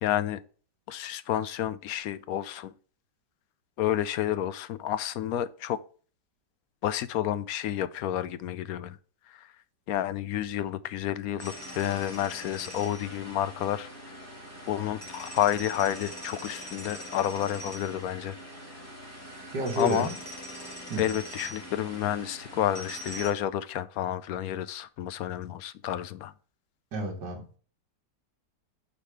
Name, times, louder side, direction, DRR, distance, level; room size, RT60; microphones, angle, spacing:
voice 1, 0.0-0.4 0.9-2.7 3.8-5.8 6.8-9.0 9.3-9.5 9.9-14.2 14.7-18.4 19.8-20.1 21.0-26.3, left 11 dB, 70° left, 0.9 m, -30 dB
sound 1, 11.4-23.3, equal, 10° left, 2.0 m, -42 dB
voice 2, 19.5-20.1 20.9-21.0 26.9-27.4, right 1 dB, 75° right, 2.4 m, -30 dB
8.6 x 4.2 x 4.7 m
omnidirectional pair, 1.8 m